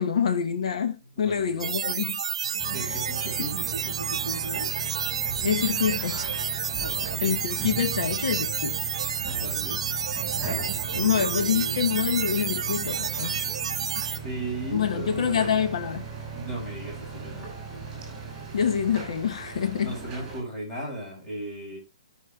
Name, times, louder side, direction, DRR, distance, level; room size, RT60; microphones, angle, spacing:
voice 1, 0.0-2.2 2.8-3.0 5.4-6.4 7.2-9.0 10.9-13.4 14.7-16.0 18.5-20.0, left 7 dB, 65° left, 1.0 m, -26 dB
voice 2, 1.2-1.9 2.7-4.7 6.8-7.2 9.2-9.8 11.0-11.8 14.2-15.4 16.3-17.5 19.8-21.8, right 1 dB, 15° left, 5.5 m, -36 dB
sound 1, 1.6-14.2, right 7 dB, 60° right, 1.0 m, -30 dB
sound 2, 2.6-20.4, right 5 dB, 15° right, 6.1 m, -37 dB
17.5 x 6.4 x 2.3 m
hypercardioid pair, 150°, 4 cm